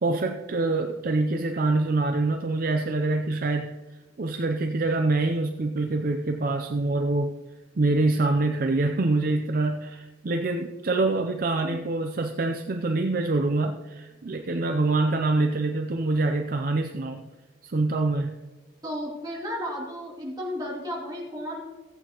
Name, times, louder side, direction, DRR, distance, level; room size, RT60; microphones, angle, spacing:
voice 1, 0.0-3.7 4.2-7.4 7.8-17.3 17.6-18.4, right 2 dB, 50° right, 5 dB, 0.5 m, -25 dB
voice 2, 18.8-21.6, equal, 20° right, -4 dB, 2.5 m, -33 dB
15.0 x 8.3 x 2.9 m, 1.2 s
head